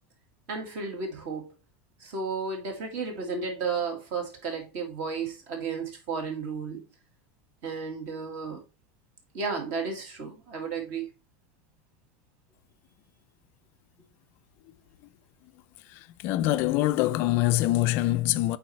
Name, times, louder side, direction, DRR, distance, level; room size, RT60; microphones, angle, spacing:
voice 1, 0.5-1.6 2.0-6.8 7.6-8.6 9.3-11.1, right 5 dB, 45° right, 2.1 m, -33 dB
voice 2, 15.9-18.6, left 16 dB, 40° left, 0.4 m, -24 dB
8.6 x 4.2 x 3.2 m
supercardioid pair, 180°, 6 cm